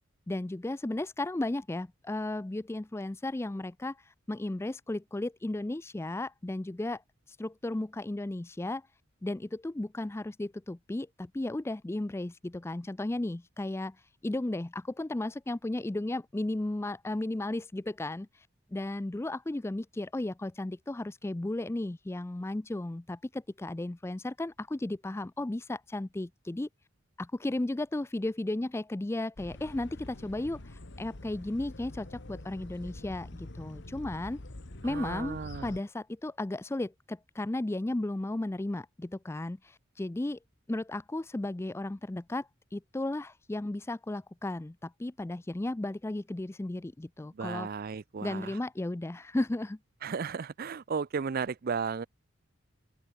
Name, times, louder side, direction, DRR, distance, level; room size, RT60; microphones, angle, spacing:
voice 1, 0.3-4.0 4.3-7.0 7.4-8.8 9.2-14.0 14.2-18.3 18.7-26.7 27.2-34.4 34.8-40.4 40.7-47.7 48.2-49.8, left 1 dB, 15° left, 0.4 m, -34 dB
sound 1, 29.4-35.8, left 1 dB, 60° left, 1.6 m, -45 dB
voice 2, 34.8-35.8 47.3-48.6 50.0-52.1, right 5 dB, 45° right, 0.5 m, -34 dB
open air
head